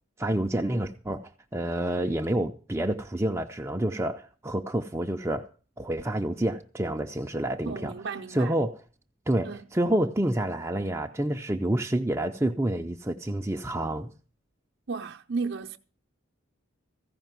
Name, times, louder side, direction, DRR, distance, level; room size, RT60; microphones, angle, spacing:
voice 1, 0.2-5.5 5.8-7.9 8.3-8.8 9.3-14.1, right 1 dB, 10° right, 0.5 m, -28 dB
voice 2, 7.6-8.6 9.4-9.7 14.9-15.8, right 4 dB, 55° right, 0.7 m, -34 dB
15.5 x 5.2 x 9.1 m
head